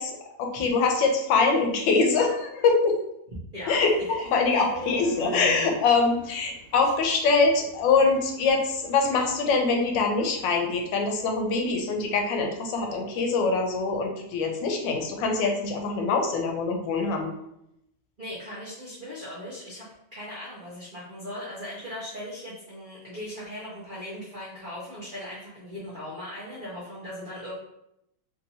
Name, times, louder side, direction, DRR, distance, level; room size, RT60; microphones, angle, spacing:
voice 1, 0.0-3.0 3.7-17.3, left 4 dB, 85° left, 2 dB, 1.3 m, -24 dB
sound 1, 3.6-11.6, right 3 dB, 55° right, 1.2 m, -43 dB
voice 2, 18.2-19.8 20.1-27.5, left 1 dB, 80° right, -6 dB, 0.4 m, -38 dB
3.3 x 2.7 x 2.7 m, 0.81 s
omnidirectional pair, 2.0 m